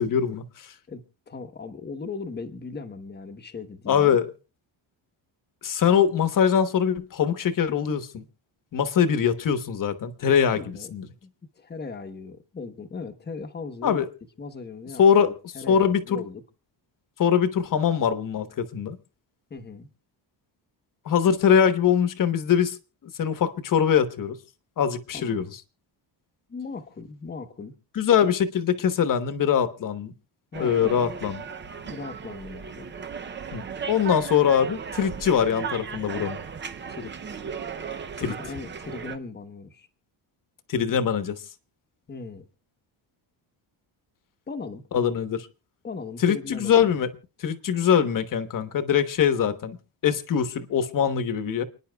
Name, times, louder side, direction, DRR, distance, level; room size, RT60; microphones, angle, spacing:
voice 1, 0.0-0.7 3.9-4.3 5.6-8.2 8.7-11.1 13.8-14.1 15.0-15.3 15.7-16.2 17.2-19.0 21.0-22.8 23.2-24.4 24.8-25.5 27.9-30.1 30.6-31.4 33.5-36.4 38.2-38.3 40.7-41.4 44.9-45.5 46.2-47.1 47.4-49.8 50.0-51.6, left 8 dB, 45° left, 1.1 m, -22 dB
voice 2, 0.9-4.2 10.5-10.9 11.2-14.0 14.4-16.4 19.5-19.9 25.1-25.5 26.5-27.7 30.5-31.1 31.9-32.9 36.9-37.3 38.1-39.9 42.1-42.5 44.5-44.9 45.8-47.0, left 4 dB, 20° left, 1.0 m, -38 dB
sound 1, 30.5-39.2, right 6 dB, 25° right, 0.6 m, -36 dB
29.5 x 10.0 x 2.3 m
cardioid pair, 165°, 46 cm